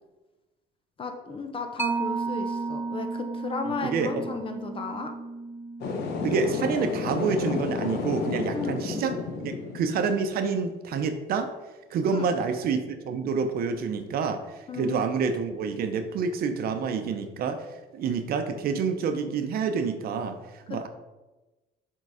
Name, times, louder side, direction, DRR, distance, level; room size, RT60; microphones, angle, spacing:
voice 1, 1.0-5.1 8.5-8.8 12.1-12.3 14.7-15.0 20.7-20.9, left 4 dB, 30° left, 6 dB, 0.8 m, -34 dB
Mallet percussion, 1.8-8.9, right 3 dB, 15° right, 0.3 m, -35 dB
voice 2, 3.8-4.3 6.2-9.1 9.4-11.5 11.9-17.7 17.9-20.9, right 5 dB, 65° right, 8 dB, 0.7 m, -28 dB
sound 1, 5.8-10.0, left 4 dB, 75° left, 1.0 m, -31 dB
6.7 x 3.8 x 4.8 m, 1.1 s
cardioid pair, 110°, 17 cm